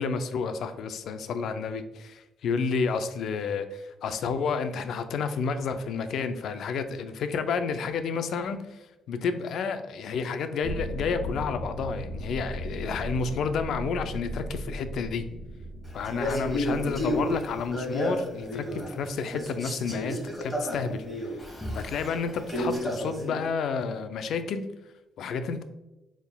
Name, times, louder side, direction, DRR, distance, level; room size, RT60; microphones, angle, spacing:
voice 1, 0.0-15.2 15.9-21.0 21.7-24.7 25.2-25.6, left 5 dB, 70° left, 10 dB, 0.4 m, -30 dB
sound 1, 10.6-17.7, equal, 85° right, 0.9 m, -37 dB
Male speech man speaking, 16.0-19.0 19.3-23.4, equal, 15° left, 1.3 m, -32 dB
4.3 x 3.5 x 2.2 m, 1.0 s
cardioid pair, 90°, 0 cm